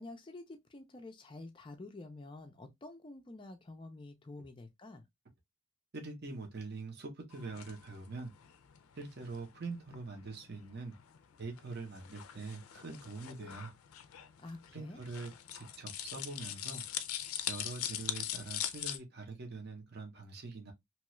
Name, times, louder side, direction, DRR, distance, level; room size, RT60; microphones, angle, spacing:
voice 1, 0.0-5.1 14.4-15.0, left 2 dB, 25° left, 0.4 m, -49 dB
voice 2, 5.9-8.3 9.0-10.9 11.4-13.7 14.7-16.8 17.5-20.7, right 3 dB, 50° right, 0.7 m, -44 dB
sound 1, 7.3-19.0, left 11 dB, 85° left, 0.4 m, -43 dB
2.9 x 2.3 x 3.0 m
head